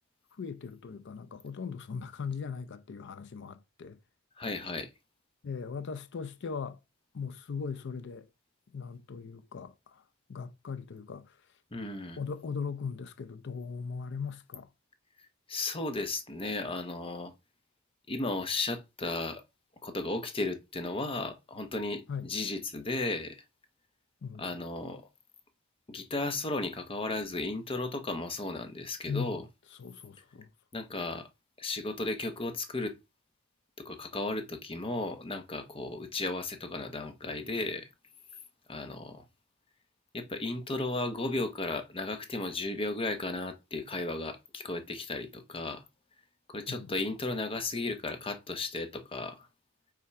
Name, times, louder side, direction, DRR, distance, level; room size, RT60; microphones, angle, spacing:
voice 1, 0.4-4.0 5.4-6.8 7.1-8.3 8.7-10.0 10.3-11.3 12.2-14.7 22.1-22.3 24.2-24.4 29.1-29.4 29.8-30.5 46.7-46.9, left 5 dB, 60° left, 0.5 m, -39 dB
voice 2, 4.4-4.9 11.7-12.2 15.5-17.3 18.1-19.4 19.8-23.4 24.4-25.0 25.9-29.4 30.7-31.3 31.6-33.0 33.8-37.9 38.7-39.2 40.1-45.8 46.5-49.5, left 2 dB, 25° left, 0.9 m, -35 dB
5.6 x 3.7 x 4.7 m
head